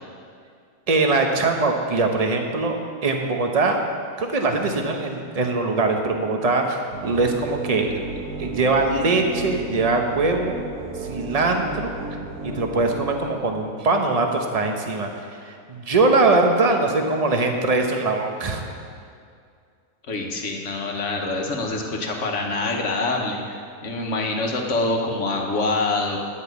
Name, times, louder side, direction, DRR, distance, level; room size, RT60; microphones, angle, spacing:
voice 1, 0.9-3.8 4.2-8.0 8.4-10.6 11.0-11.9 12.4-18.6, right 3 dB, 30° right, 3 dB, 0.8 m, -22 dB
sound 1, 6.9-13.2, right 3 dB, 80° right, 1.5 m, -33 dB
voice 2, 20.1-26.2, left 2 dB, 55° left, 1 dB, 1.5 m, -25 dB
10.5 x 5.5 x 8.0 m, 2.3 s
omnidirectional pair, 1.6 m